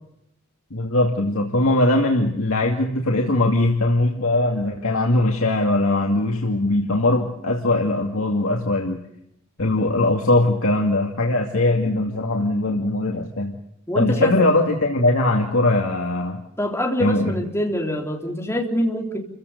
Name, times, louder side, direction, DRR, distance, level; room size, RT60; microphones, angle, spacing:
voice 1, 0.7-9.0 9.6-13.6 13.9-16.4 17.0-17.4, left 2 dB, 75° left, 1 dB, 2.5 m, -20 dB
voice 2, 13.9-14.5 16.6-19.2, equal, 10° left, 2 dB, 3.5 m, -25 dB
29.0 x 16.0 x 6.8 m, 0.80 s
head